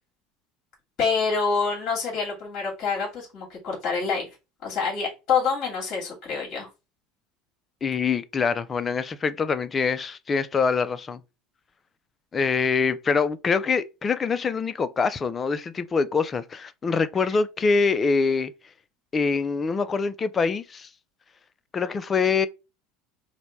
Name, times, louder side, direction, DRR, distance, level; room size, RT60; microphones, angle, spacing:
voice 1, 1.0-4.3 4.6-6.7 17.2-17.3, left 5 dB, 50° left, 2.4 m, -26 dB
voice 2, 7.8-11.2 12.3-18.5 19.1-20.9 21.7-22.5, left 5 dB, 25° left, 0.4 m, -24 dB
4.0 x 2.2 x 4.5 m
supercardioid pair, 100°, 0 cm